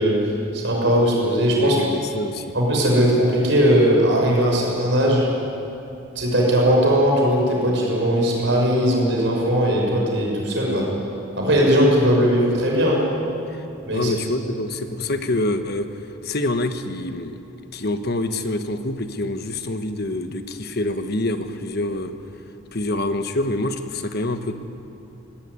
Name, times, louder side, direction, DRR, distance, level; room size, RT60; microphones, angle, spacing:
voice 1, 0.0-1.8 2.5-5.3 6.2-10.9 11.4-13.1 13.9-14.1, equal, 60° right, -1 dB, 6.2 m, -19 dB
voice 2, 1.6-2.5 13.5-13.6 13.9-15.9 16.2-17.4 17.7-22.2 22.7-24.5, left 2 dB, 50° left, 8 dB, 1.2 m, -26 dB
18.5 x 18.0 x 9.7 m, 2.8 s
head